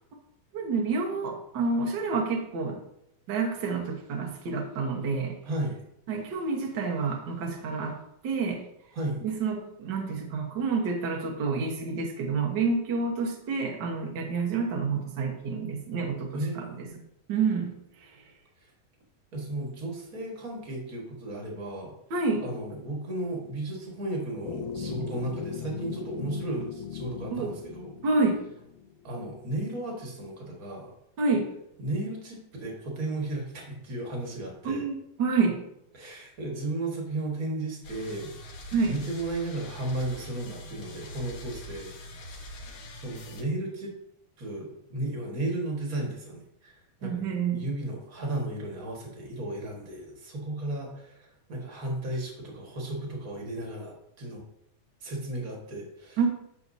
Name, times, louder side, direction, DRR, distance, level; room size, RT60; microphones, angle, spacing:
voice 1, 0.5-2.8 3.3-5.4 6.1-8.6 9.2-16.6 17.3-17.7 22.1-22.4 27.3-27.5 28.0-28.4 31.2-31.5 34.6-35.6 38.7-38.9 47.0-47.6 56.2-56.3, right 4 dB, 80° right, 0 dB, 1.0 m, -28 dB
voice 2, 5.4-5.8 8.9-9.2 16.3-17.0 19.3-21.9 22.4-27.9 29.0-30.9 31.8-34.8 35.9-38.3 38.8-42.4 42.9-43.9 44.4-46.7 47.0-47.2 47.5-54.4 55.0-56.2, right 2 dB, 40° right, -1 dB, 1.3 m, -34 dB
sound 1, 24.4-29.1, left 8 dB, 90° left, 1.7 m, -38 dB
sound 2, 37.8-43.4, left 1 dB, 70° left, 2.9 m, -43 dB
11.5 x 6.1 x 2.7 m, 0.79 s
omnidirectional pair, 4.0 m